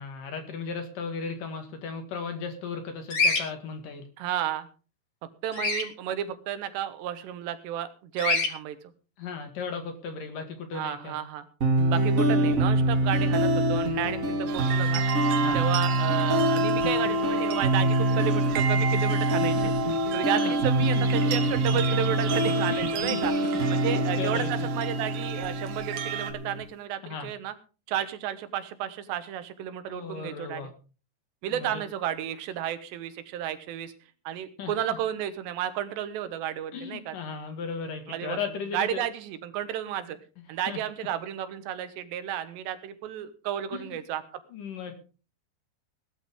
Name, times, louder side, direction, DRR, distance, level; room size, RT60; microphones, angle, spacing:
voice 1, 0.0-4.1 9.2-11.2 15.4-15.6 19.6-19.7 20.4-20.5 20.8-21.0 22.7-23.2 23.8-24.7 27.0-27.3 29.9-30.7 31.5-31.8 34.6-35.0 36.7-39.0 40.7-40.8 43.7-43.9 44.5-45.0, left 5 dB, 55° left, 6 dB, 3.3 m, -36 dB
Bird vocalization bird call bird song, 3.1-3.4 5.5-5.8 8.2-8.5, left 3 dB, 75° left, 0.8 m, -24 dB
voice 2, 4.2-4.7 5.4-8.8 10.7-11.4 11.9-15.0 15.5-19.7 20.1-23.3 23.7-27.5 27.9-30.7 31.4-33.9 34.2-37.2 38.1-38.4 38.7-40.2 40.5-44.2, right 10 dB, 85° right, 11 dB, 3.4 m, -32 dB
sound 1, 11.6-26.6, right 1 dB, 30° right, 1.7 m, -25 dB
sound 2, 14.5-26.3, right 7 dB, 65° right, 2.9 m, -33 dB
18.0 x 12.5 x 3.7 m, 0.35 s
omnidirectional pair, 4.9 m